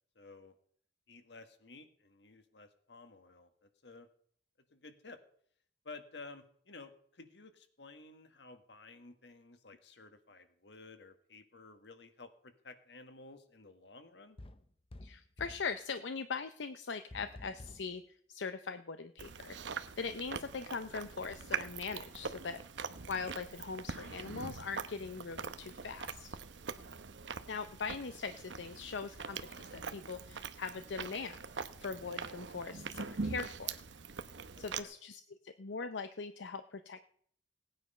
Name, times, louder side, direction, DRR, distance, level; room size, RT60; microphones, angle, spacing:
voice 1, 0.1-0.6 1.1-4.1 4.7-5.2 5.8-14.4 34.5-34.9, left 3 dB, 70° left, 8 dB, 1.5 m, -53 dB
door wood bang on aggressively various, 14.4-15.7 17.1-17.9, left 1 dB, 30° left, 0.7 m, -50 dB
voice 2, 15.0-19.6 20.0-22.6 23.1-26.4 27.5-31.4 31.8-33.8 34.6-37.0, left 5 dB, 85° left, 10 dB, 0.6 m, -41 dB
Chewing mastication, 19.2-34.8, right 5 dB, 85° right, 0.8 m, -43 dB
17.5 x 9.4 x 5.5 m, 0.62 s
head